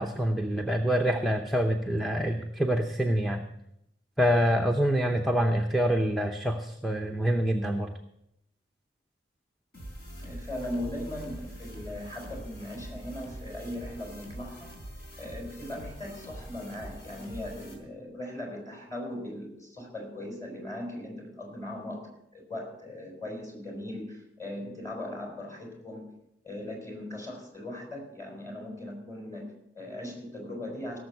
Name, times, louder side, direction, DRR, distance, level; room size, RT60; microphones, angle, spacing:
voice 1, 0.0-3.4 4.2-7.9, equal, ahead, 3 dB, 0.7 m, -26 dB
sound 1, 9.7-17.7, right 1 dB, 60° left, 4.0 m, -43 dB
voice 2, 10.2-14.7 15.2-26.2 26.4-31.0, left 1 dB, 15° left, 1 dB, 4.0 m, -39 dB
17.0 x 7.1 x 6.6 m, 0.79 s
head